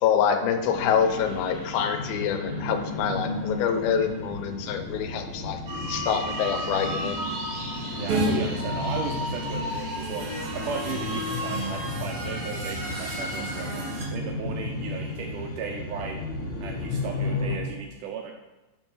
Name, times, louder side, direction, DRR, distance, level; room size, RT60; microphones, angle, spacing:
voice 1, 0.0-5.6 5.9-7.2, left 8 dB, 80° left, 7 dB, 2.5 m, -26 dB
sound 1, 0.6-17.6, left 2 dB, 45° left, 1.6 m, -34 dB
sound 2, 5.7-11.7, equal, 25° right, 2.7 m, -34 dB
voice 2, 7.9-10.3 10.5-13.8 14.1-16.2 16.6-18.3, right 6 dB, 75° right, 1 dB, 1.9 m, -36 dB
sound 3, 8.1-8.3 9.7-14.0, right 2 dB, 45° right, 2.7 m, -32 dB
11.5 x 5.4 x 4.5 m, 1.1 s
omnidirectional pair, 4.3 m